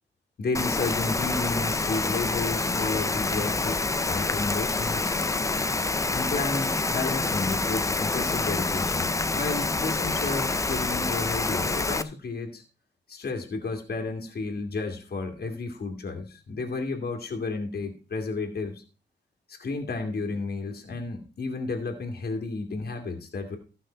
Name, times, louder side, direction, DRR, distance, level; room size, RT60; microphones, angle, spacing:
voice 1, 0.4-5.2 6.1-12.6 13.1-18.8 19.5-23.6, left 3 dB, 60° left, 3 dB, 2.3 m, -32 dB
Rain, 0.5-12.0, left 3 dB, 15° left, 0.5 m, -27 dB
15.0 x 5.8 x 4.4 m, 0.35 s
wide cardioid pair, 165°, 18 cm